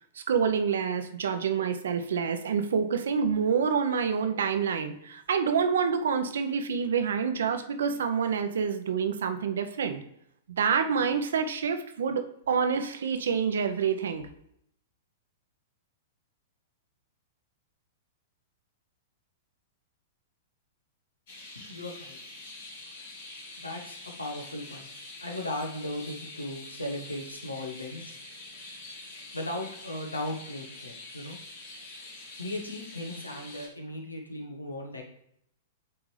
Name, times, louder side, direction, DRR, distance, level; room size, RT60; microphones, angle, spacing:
voice 1, 0.2-10.0 10.6-14.3, right 6 dB, 65° right, 7 dB, 0.7 m, -27 dB
sound 1, 21.3-33.7, left 2 dB, 55° left, 1.7 m, -45 dB
voice 2, 21.5-22.2 23.6-24.9 25.2-28.1 29.3-31.4 32.4-35.0, left 1 dB, 90° left, 2 dB, 1.2 m, -37 dB
8.5 x 3.6 x 3.3 m, 0.73 s
figure-of-eight pair, 105°, 0 cm